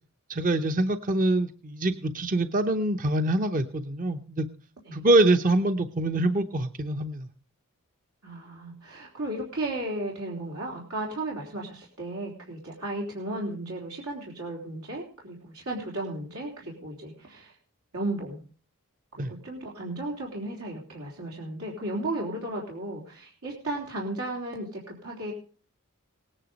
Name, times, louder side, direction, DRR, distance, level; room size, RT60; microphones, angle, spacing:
voice 1, 0.3-4.5 4.9-7.3 19.2-19.3, right 2 dB, 40° right, 8 dB, 0.8 m, -25 dB
voice 2, 8.2-17.6 17.9-18.4 19.1-25.3, right 1 dB, 90° right, -2 dB, 3.8 m, -34 dB
18.5 x 9.9 x 5.2 m, 0.40 s
head